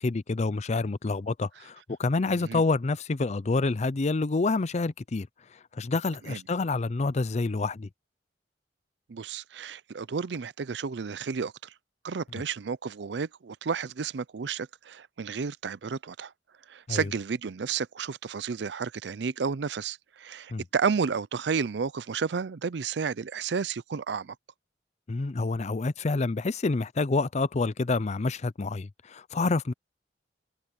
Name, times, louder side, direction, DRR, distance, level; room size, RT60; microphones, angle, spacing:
voice 1, 0.0-5.3 5.7-7.9 16.9-17.0 20.5-20.6 25.1-29.7, left 3 dB, 40° left, 0.5 m, -28 dB
voice 2, 2.3-2.6 6.3-6.4 9.1-11.7 12.0-16.3 16.7-24.3, right 5 dB, 70° right, 0.5 m, -32 dB
head